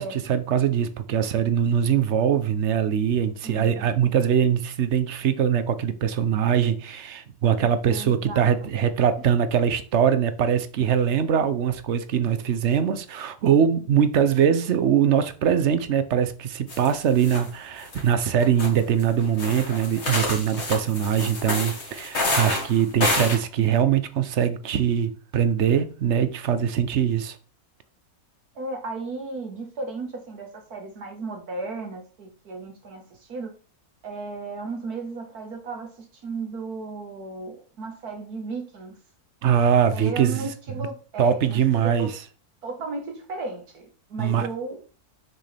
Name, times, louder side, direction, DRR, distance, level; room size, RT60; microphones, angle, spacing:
voice 1, 0.0-27.4 39.4-40.5 41.2-42.2 44.2-44.5, right 8 dB, 60° right, 0.9 m, -22 dB
voice 2, 3.4-3.9 7.8-8.5 28.6-33.5 34.0-39.0 39.9-42.1 42.6-44.8, right 3 dB, 80° right, 2.0 m, -35 dB
sound 1, 16.7-16.9 17.2-17.5 17.8-18.0 18.4-23.3, left 2 dB, 45° left, 2.2 m, -28 dB
6.5 x 6.2 x 3.4 m
omnidirectional pair, 1.6 m